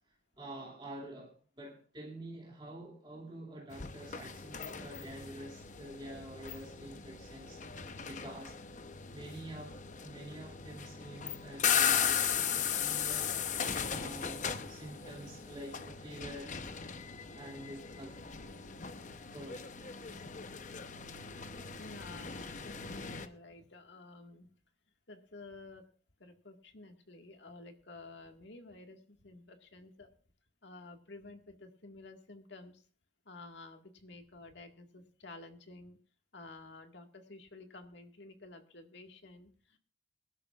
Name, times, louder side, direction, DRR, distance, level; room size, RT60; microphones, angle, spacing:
voice 1, 0.1-7.6 8.0-8.6 9.1-13.3 13.8-16.6 17.3-18.2 19.3-19.7, right 1 dB, 25° right, 2.5 m, -47 dB
sound 1, 3.7-23.3, left 8 dB, 40° left, 0.8 m, -37 dB
voice 2, 21.8-24.5 25.1-25.9 26.2-30.1 30.6-32.8 33.3-36.0 36.3-39.8, left 2 dB, 70° left, 1.9 m, -52 dB
23.5 x 12.0 x 2.4 m
head